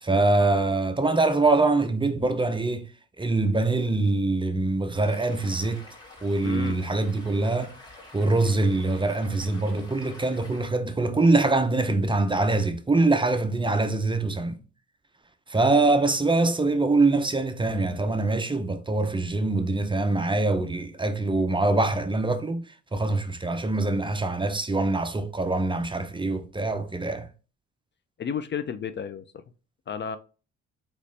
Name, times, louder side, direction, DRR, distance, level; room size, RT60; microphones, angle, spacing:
voice 1, 0.0-2.9 3.2-5.8 6.2-7.7 8.1-14.6 15.5-22.6 22.9-27.3, right 2 dB, 15° right, 0.5 m, -24 dB
Stream, 5.0-10.7, left 2 dB, 15° left, 2.2 m, -48 dB
voice 2, 6.4-6.8 28.2-29.4 29.9-30.2, left 7 dB, 40° left, 0.4 m, -32 dB
4.1 x 3.1 x 3.2 m
cardioid pair, 90°, 30 cm